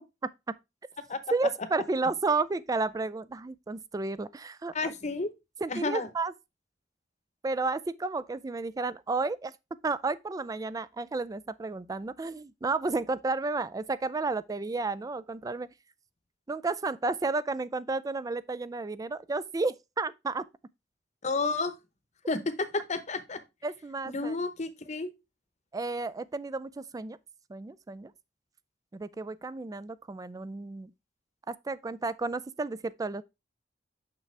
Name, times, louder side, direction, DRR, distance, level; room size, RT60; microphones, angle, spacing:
voice 1, 1.3-4.9 5.6-6.3 7.4-9.5 9.8-15.7 16.5-20.4 23.6-24.4 25.7-27.2 27.5-28.1 28.9-30.9 31.5-33.2, right 3 dB, 20° right, 0.3 m, -32 dB
voice 2, 4.7-5.3 5.7-6.1 21.2-21.7 22.3-23.4 24.0-25.1, left 3 dB, 40° left, 0.8 m, -31 dB
6.7 x 5.9 x 3.3 m
head